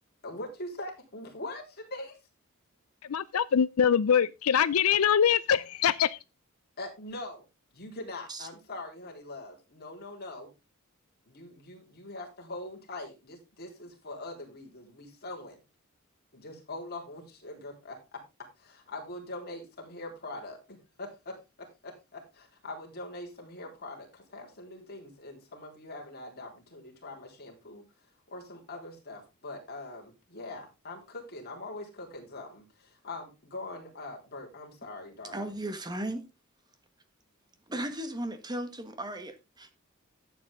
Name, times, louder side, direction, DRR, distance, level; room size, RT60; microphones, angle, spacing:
voice 1, 0.2-2.2 6.8-7.4 7.7-10.5 11.3-15.6 16.3-18.2 18.6-27.8 28.3-35.5, left 2 dB, 50° left, 3.8 m, -43 dB
voice 2, 3.0-6.2, left 8 dB, 85° left, 0.5 m, -24 dB
voice 3, 35.3-36.3 37.7-39.8, right 1 dB, 20° right, 1.6 m, -36 dB
12.0 x 8.5 x 3.6 m
head